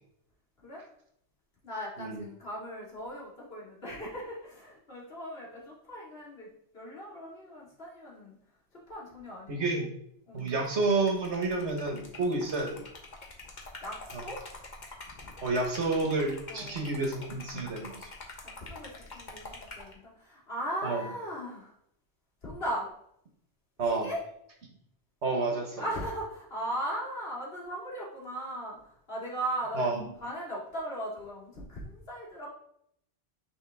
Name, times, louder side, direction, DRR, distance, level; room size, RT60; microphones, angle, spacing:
voice 1, 1.6-6.5 6.7-8.4 8.7-9.9 10.3-10.5 13.8-14.4 15.1-15.3 16.5-16.9 18.4-21.7 22.4-22.9 24.0-24.2 25.8-29.9 30.2-32.5, right 1 dB, 60° left, -4 dB, 2.5 m, -38 dB
voice 2, 9.5-9.9 10.3-12.9 14.1-14.2 15.4-18.1 20.8-21.0 23.8-24.1 25.2-25.8 29.8-30.0, right 3 dB, 85° right, 1 dB, 1.7 m, -30 dB
Liquid, 10.4-19.9, left 2 dB, 45° left, 1.3 m, -46 dB
9.1 x 4.0 x 3.5 m, 0.70 s
omnidirectional pair, 1.1 m